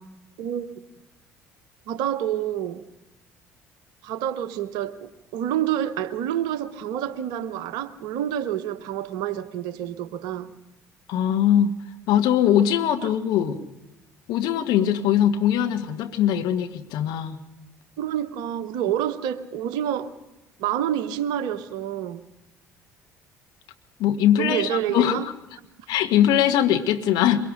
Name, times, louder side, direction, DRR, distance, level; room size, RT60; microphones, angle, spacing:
voice 1, 1.9-2.8 4.0-10.5 13.0-13.1 18.0-20.1 20.6-22.2 24.4-25.3, right 10 dB, 65° right, 1.0 m, -28 dB
voice 2, 11.1-11.7 12.1-13.6 14.3-17.4 24.0-25.2 25.9-27.4, left 10 dB, 60° left, 1.3 m, -21 dB
23.0 x 23.0 x 5.1 m
figure-of-eight pair, 55°, 8 cm